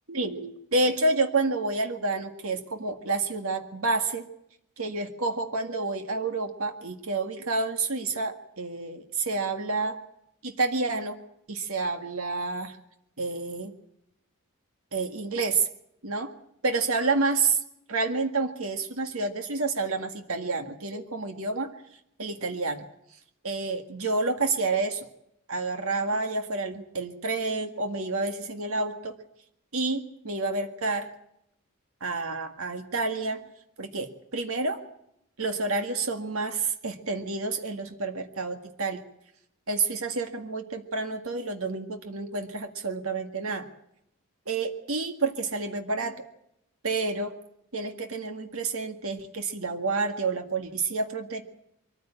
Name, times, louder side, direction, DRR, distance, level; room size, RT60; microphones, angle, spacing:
voice 1, 0.1-4.2 4.8-10.0 10.4-11.2 11.5-12.8 13.2-13.7 14.9-15.7 16.0-16.3 16.6-17.6 17.9-21.7 22.2-22.8 23.4-25.1 25.5-29.2 29.7-31.1 32.0-33.4 33.8-34.8 35.4-39.0 39.7-43.7 44.5-46.2 46.8-47.3 47.7-51.4, right 3 dB, 65° right, 6 dB, 1.9 m, -29 dB
23.5 x 14.5 x 8.9 m, 0.77 s
head